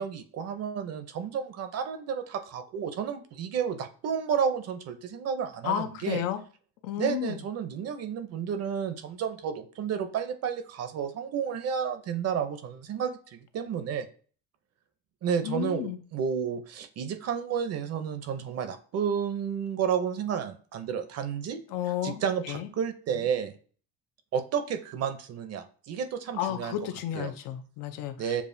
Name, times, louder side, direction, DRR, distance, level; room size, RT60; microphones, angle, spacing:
voice 1, 0.0-6.2 7.0-14.1 15.2-21.6 22.0-23.5 24.3-26.7 27.1-27.3 28.2-28.4, right 7 dB, 50° right, 9 dB, 0.6 m, -31 dB
voice 2, 5.6-6.4 6.8-7.4 15.4-16.0 21.7-22.7 26.3-28.4, left 11 dB, 90° left, 8 dB, 0.6 m, -32 dB
7.0 x 2.4 x 2.6 m, 0.41 s
cardioid pair, 135°, 32 cm